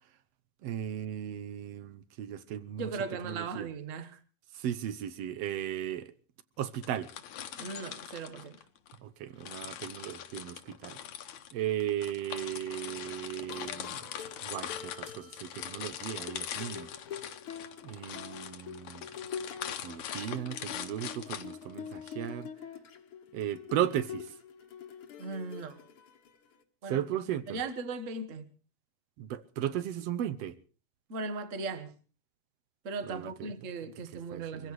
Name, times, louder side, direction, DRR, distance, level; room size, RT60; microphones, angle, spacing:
voice 1, 0.6-2.9 3.2-3.7 4.5-6.1 6.6-7.1 9.0-11.0 11.5-14.0 14.4-16.9 17.8-19.1 19.8-22.5 23.3-24.3 26.9-27.6 29.2-30.6 33.1-33.5 34.3-34.7, right 11 dB, 70° right, 1.8 m, -36 dB
voice 2, 2.8-4.2 7.5-8.6 25.2-25.8 26.8-27.0 27.5-28.5 31.1-32.0 32.8-34.7, right 4 dB, 45° right, 1.0 m, -38 dB
sound 1, 6.7-9.0 9.4-22.1, left 10 dB, 75° left, 2.5 m, -42 dB
sound 2, 13.5-26.6, left 7 dB, 55° left, 2.0 m, -45 dB
26.0 x 15.5 x 3.2 m
omnidirectional pair, 3.3 m